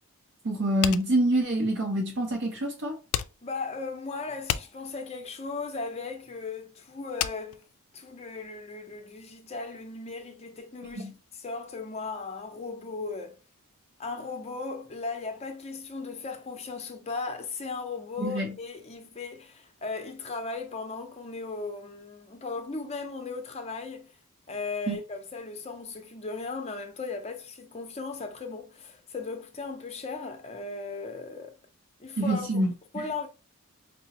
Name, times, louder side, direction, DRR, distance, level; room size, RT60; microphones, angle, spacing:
voice 1, 0.4-3.0 11.0-11.1 18.2-18.5 24.9-25.0 32.2-33.1, right 1 dB, 55° right, 0.6 m, -26 dB
sound 1, 0.8-8.5, left 11 dB, 90° left, 0.3 m, -35 dB
voice 2, 3.4-7.6 7.9-13.4 14.0-24.1 24.5-31.6 32.0-32.6 32.9-33.3, left 4 dB, 30° left, 0.6 m, -37 dB
4.7 x 2.0 x 2.8 m
head